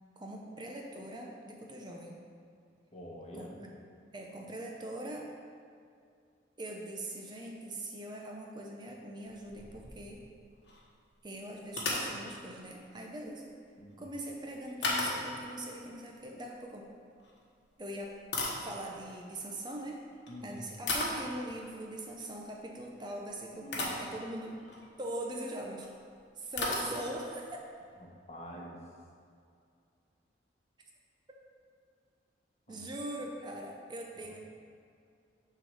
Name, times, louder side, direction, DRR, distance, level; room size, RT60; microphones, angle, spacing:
voice 1, 0.2-2.2 3.3-3.7 4.1-5.3 6.6-10.2 11.2-13.5 14.0-16.9 17.8-18.2 18.6-20.0 20.4-24.5 25.0-25.9 26.4-27.6 32.7-34.4, right 1 dB, 25° right, 0 dB, 0.6 m, -41 dB
voice 2, 2.9-3.6 13.8-14.1 20.3-20.6 23.6-24.0 28.0-28.8 32.7-32.8 34.2-34.3, equal, 35° left, -2 dB, 1.0 m, -46 dB
sound 1, 9.2-10.4 10.6-10.8 11.7-12.2 14.8-15.5 17.2-17.4 18.0-19.2 20.1-20.3 20.9-21.3 23.1-23.2 23.7-24.1 24.6-24.9 25.8-25.9 26.1-26.2 26.5-27.3, left 2 dB, 75° left, 1.2 m, -35 dB
6.4 x 3.8 x 6.3 m, 2.4 s
head